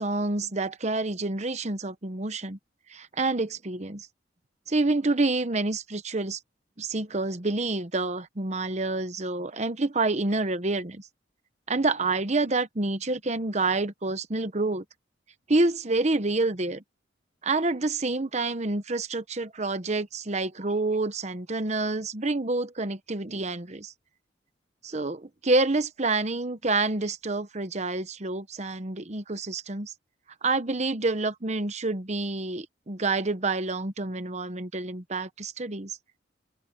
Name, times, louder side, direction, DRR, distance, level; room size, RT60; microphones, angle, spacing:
voice 1, 0.0-2.6 2.9-4.1 4.7-6.4 6.8-11.1 11.7-14.8 15.5-16.8 17.4-23.9 24.8-29.9 30.4-36.0, right 2 dB, 35° right, 1.0 m, -28 dB
open air
head